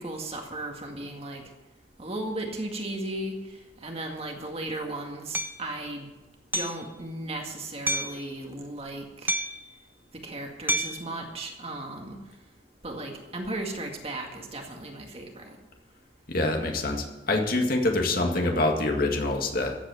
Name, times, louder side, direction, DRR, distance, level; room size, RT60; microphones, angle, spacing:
voice 1, 0.0-1.4 2.0-3.4 3.8-6.1 6.5-9.3 10.1-12.2 12.8-15.6, right 1 dB, 35° right, 2 dB, 2.0 m, -35 dB
Hammer, 5.3-5.6 6.5-6.8 7.9-8.2 9.3-9.7 10.7-11.1, right 1 dB, 10° right, 0.6 m, -28 dB
voice 2, 16.3-19.8, left 2 dB, 50° left, 2 dB, 2.0 m, -25 dB
14.0 x 8.2 x 7.8 m, 1.1 s
head